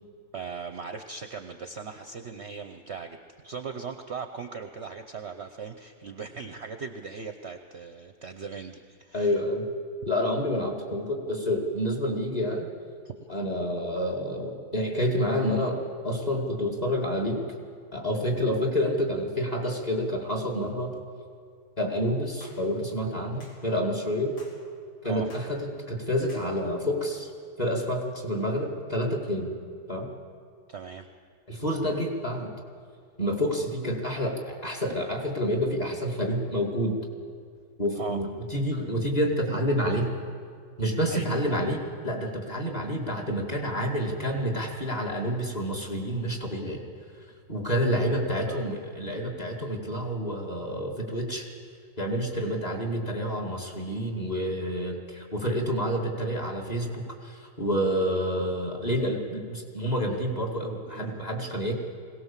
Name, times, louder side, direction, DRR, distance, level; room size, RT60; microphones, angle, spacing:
voice 1, 0.3-9.3 13.0-13.3 25.0-25.3 30.7-31.1 38.0-38.2 41.1-41.6 47.9-48.7 60.9-61.2, right 5 dB, 50° right, 7 dB, 0.9 m, -39 dB
voice 2, 9.1-9.7 10.1-12.7 13.3-17.4 17.9-20.9 21.8-24.4 25.0-27.3 27.6-29.5 29.9-30.1 31.5-32.5 33.2-37.0 37.8-40.1 40.8-46.8 47.5-51.5 52.0-61.7, equal, 25° left, 1 dB, 2.5 m, -28 dB
sound 1, 22.4-22.6 23.4-23.6 24.4-24.6 25.3-25.5 26.3-26.5, left 2 dB, 90° left, 3.6 m, -50 dB
21.5 x 18.0 x 7.4 m, 2.1 s
omnidirectional pair, 1.7 m